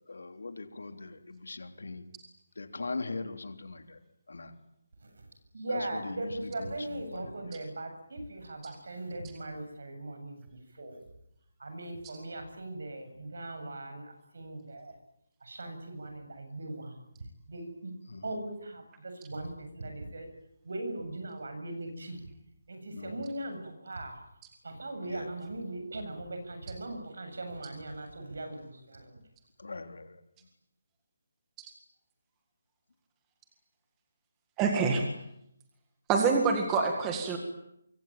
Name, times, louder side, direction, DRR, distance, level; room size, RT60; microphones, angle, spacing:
voice 1, 0.1-2.0 2.6-3.8 4.3-4.5 6.2-6.3 7.1-7.3 18.1-18.2 22.9-23.1 25.0-25.3 29.6-30.1, left 3 dB, 85° left, 7 dB, 3.5 m, -40 dB
voice 2, 5.5-10.4 10.7-11.0 11.6-14.9 15.4-16.9 17.5-17.9 18.2-20.3 20.6-22.2 22.7-24.2 24.6-29.2, right 2 dB, 60° right, 6 dB, 7.9 m, -39 dB
voice 3, 34.6-35.0 36.1-37.4, right 5 dB, 10° right, 3 dB, 1.9 m, -26 dB
25.0 x 24.0 x 9.1 m, 0.79 s
hypercardioid pair, 180°, 0 cm